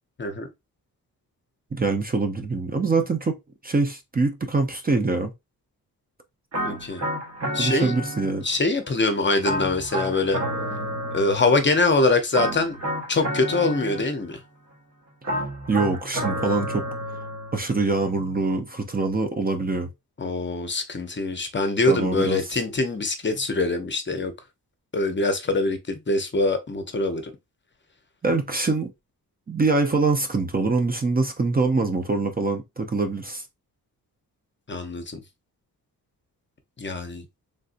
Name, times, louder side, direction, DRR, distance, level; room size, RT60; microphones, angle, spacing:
voice 1, 1.7-3.4 3.6-5.3 7.6-8.4 15.3-16.8 17.5-19.9 21.9-22.4 28.2-28.9 29.5-33.4, right 3 dB, 25° right, 0.5 m, -24 dB
sound 1, 6.5-8.6 9.4-11.8 12.3-14.4 15.2-17.6, equal, 45° right, 1.2 m, -30 dB
voice 2, 6.6-7.0 7.5-7.9 8.4-10.4 11.1-12.8 13.1-14.4 20.2-24.3 24.9-27.3 34.7-35.2 36.8-37.2, left 2 dB, 30° left, 0.7 m, -24 dB
3.3 x 2.6 x 2.5 m
cardioid pair, 90°, 36 cm